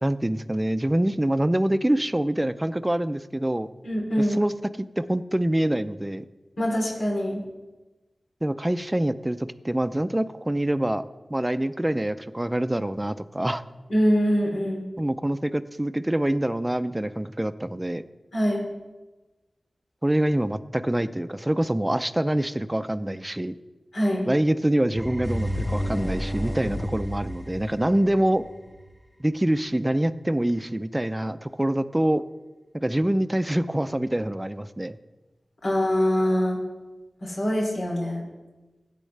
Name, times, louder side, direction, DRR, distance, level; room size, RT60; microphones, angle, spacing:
voice 1, 0.0-3.7 4.2-4.5 4.8-6.3 8.4-11.0 11.3-13.6 15.0-18.0 20.0-23.6 24.3-28.4 29.2-32.2 32.7-35.0, right 1 dB, 20° right, 13 dB, 0.5 m, -25 dB
voice 2, 3.8-4.4 6.6-7.5 13.9-14.8 18.3-18.7 23.9-24.3 35.6-36.6 37.2-38.2, equal, 85° left, -4 dB, 3.1 m, -24 dB
sound 1, 24.9-28.8, equal, 15° left, 1.0 m, -31 dB
15.0 x 8.4 x 3.4 m, 1.1 s
cardioid pair, 45°, 0 cm